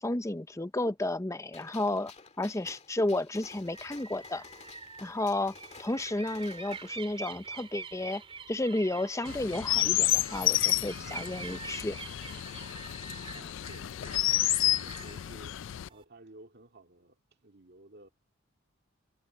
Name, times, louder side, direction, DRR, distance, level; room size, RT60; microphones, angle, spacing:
voice 1, 0.0-2.1 2.4-4.4 5.0-8.2 8.5-12.0, left 2 dB, 15° left, 0.6 m, -32 dB
Gunshot gunfire, 1.5-7.0, left 5 dB, 35° left, 1.9 m, -53 dB
sound 1, 3.6-16.0, right 4 dB, 25° right, 2.7 m, -45 dB
Chirp tweet, 9.2-15.9, left 15 dB, 65° left, 0.3 m, -30 dB
voice 2, 13.3-15.6 15.9-18.1, right 2 dB, 55° right, 2.1 m, -54 dB
head